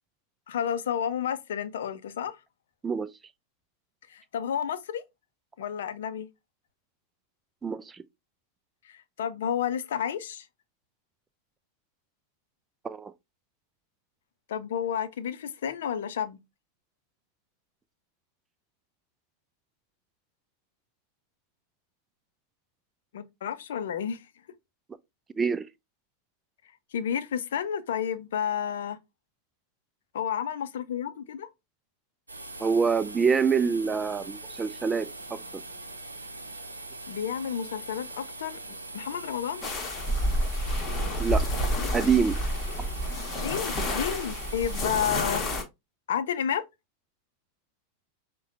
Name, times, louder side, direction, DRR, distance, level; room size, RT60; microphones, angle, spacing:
voice 1, 0.5-2.4 4.1-5.0 5.6-6.3 8.9-10.5 14.5-16.4 23.1-24.2 26.9-29.0 30.1-31.5 37.1-38.6 38.9-39.7 43.4-45.4 46.1-46.6, left 8 dB, 60° left, 0.5 m, -31 dB
voice 2, 7.6-8.0 12.8-13.1 25.4-25.7 32.6-35.6 41.2-41.5 41.9-42.4, right 6 dB, 15° right, 0.4 m, -26 dB
sound 1, 32.3-45.2, right 2 dB, 80° right, 0.7 m, -42 dB
sound 2, 39.6-45.6, equal, 20° left, 1.2 m, -29 dB
6.3 x 2.2 x 2.5 m
figure-of-eight pair, 90°, 0 cm